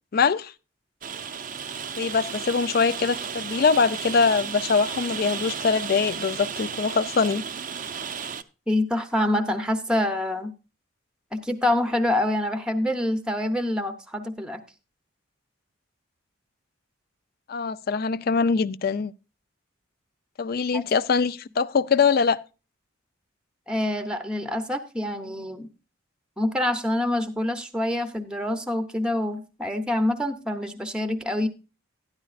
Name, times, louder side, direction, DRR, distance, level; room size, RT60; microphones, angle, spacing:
voice 1, 0.1-0.5 2.0-7.4 17.5-19.1 20.4-22.4, left 5 dB, 45° left, 0.4 m, -23 dB
Rain, 1.0-8.4, right 7 dB, 40° right, 0.5 m, -34 dB
voice 2, 8.7-10.5 11.3-14.6 20.7-20.8 23.7-25.7 26.4-31.5, left 1 dB, 5° right, 0.7 m, -26 dB
12.5 x 10.5 x 2.4 m
head